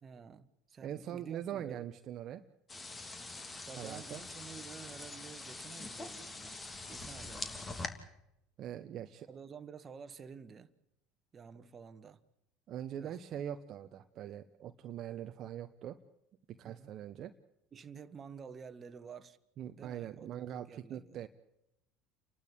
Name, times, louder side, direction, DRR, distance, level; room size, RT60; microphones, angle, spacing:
voice 1, 0.0-1.9 3.7-6.6 6.9-7.9 9.3-10.7 11.3-12.2 13.0-13.2 16.6-16.9 17.7-19.4 19.8-21.2, right 6 dB, 35° right, 1.7 m, -51 dB
voice 2, 0.8-2.4 3.8-4.2 8.6-9.3 12.7-16.0 16.5-17.3 19.6-21.3, right 10 dB, 50° right, 1.2 m, -42 dB
sound 1, 2.7-7.9, left 3 dB, 25° left, 3.0 m, -44 dB
30.0 x 12.0 x 8.8 m
hypercardioid pair, 85°, 0 cm